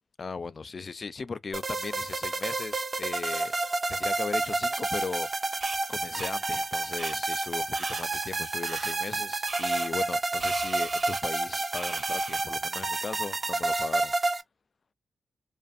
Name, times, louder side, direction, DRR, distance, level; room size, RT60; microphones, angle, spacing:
voice 1, 0.2-3.5 3.9-5.5 5.9-14.1, left 4 dB, 45° left, 0.3 m, -38 dB
sound 1, 1.5-14.4, right 2 dB, 35° right, 0.5 m, -30 dB
sound 2, 5.6-5.8 6.2-6.3 7.0-7.1 7.7-8.0 8.6-8.9 9.5-9.9 10.4-11.2 11.7-12.4, right 4 dB, 55° right, 0.9 m, -40 dB
2.5 x 2.5 x 2.3 m
cardioid pair, 65°, 0 cm